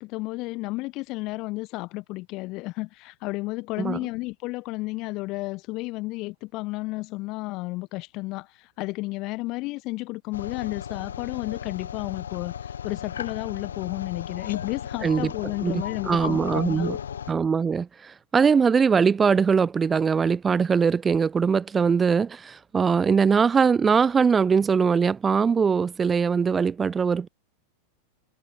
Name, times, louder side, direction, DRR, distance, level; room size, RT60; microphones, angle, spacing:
voice 1, 0.0-16.9, left 22 dB, 40° left, 1.1 m, -32 dB
sound 1, 10.3-17.3, left 8 dB, 65° left, 1.3 m, -35 dB
voice 2, 15.6-17.0 17.3-27.3, right 6 dB, 15° right, 0.4 m, -22 dB
figure-of-eight pair, 90°, 0 cm